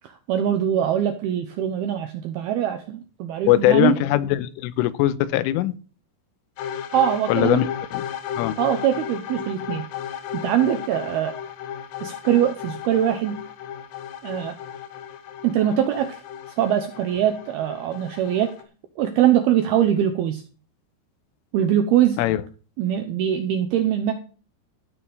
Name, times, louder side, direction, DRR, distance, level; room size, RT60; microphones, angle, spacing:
voice 1, 0.0-3.9 6.9-7.6 8.6-9.8 10.3-11.3 12.0-13.4 14.2-14.6 15.4-16.2 16.6-18.5 19.0-20.4 21.5-22.2 22.8-24.1, right 10 dB, 85° right, 7 dB, 2.3 m, -22 dB
voice 2, 3.5-5.7 7.3-8.0 8.4-8.5 22.2-22.4, left 14 dB, 85° left, 14 dB, 3.3 m, -21 dB
sound 1, 6.6-18.6, left 9 dB, 70° left, 3.0 m, -35 dB
14.0 x 5.9 x 6.9 m, 0.38 s
omnidirectional pair, 5.6 m